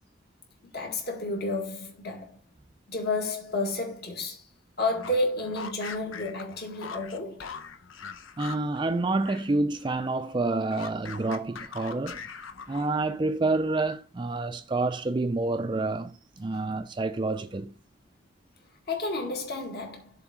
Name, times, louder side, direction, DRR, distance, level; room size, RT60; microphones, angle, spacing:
voice 1, 0.7-2.4 2.9-4.4 4.8-7.5 18.9-20.1, left 2 dB, 50° left, 1.9 m, -31 dB
sound 1, 4.8-9.5 9.8-13.1, left 5 dB, 80° left, 0.8 m, -42 dB
voice 2, 8.4-12.2 12.7-17.7, right 2 dB, 25° right, 0.4 m, -28 dB
7.3 x 3.4 x 6.2 m
head